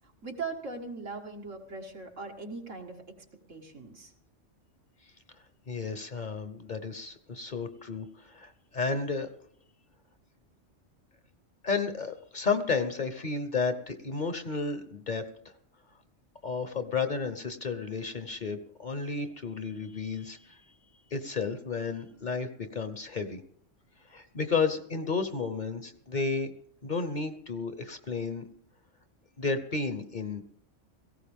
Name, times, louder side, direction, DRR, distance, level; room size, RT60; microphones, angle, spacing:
voice 1, 0.2-3.2 3.5-4.1, right 4 dB, 85° right, 1 dB, 2.3 m, -40 dB
voice 2, 5.7-9.3 11.6-15.2 16.4-20.6 21.1-23.4 24.1-26.5 26.8-28.4 29.4-30.4, left 4 dB, 40° left, 9 dB, 0.9 m, -32 dB
17.5 x 15.5 x 3.6 m, 0.65 s
omnidirectional pair, 1.3 m